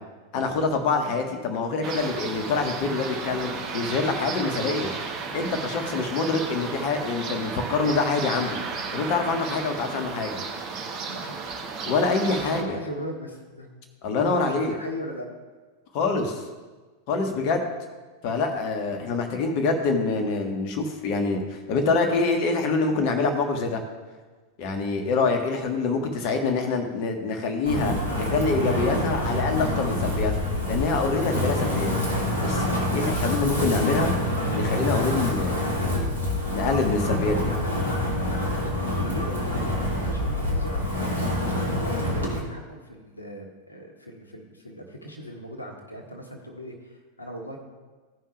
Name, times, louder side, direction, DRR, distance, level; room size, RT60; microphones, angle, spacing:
voice 1, 0.3-4.9 5.3-8.6 8.9-10.4 11.8-12.8 14.0-14.7 15.9-16.4 17.1-17.6 18.2-23.8 24.6-30.3 30.7-31.9 32.4-32.6 32.9-34.1 34.5-36.1 36.5-37.5, left 4 dB, 45° left, 4 dB, 1.4 m, -25 dB
sound 1, 1.8-12.6, right 4 dB, 35° right, 1.4 m, -34 dB
voice 2, 11.0-11.3 12.4-13.7 14.2-15.3 38.6-47.6, equal, 80° left, 1 dB, 1.4 m, -38 dB
Wind, 27.6-42.4, left 1 dB, 85° right, 2.0 m, -26 dB
16.0 x 5.6 x 3.3 m, 1.3 s
figure-of-eight pair, 90°, 0 cm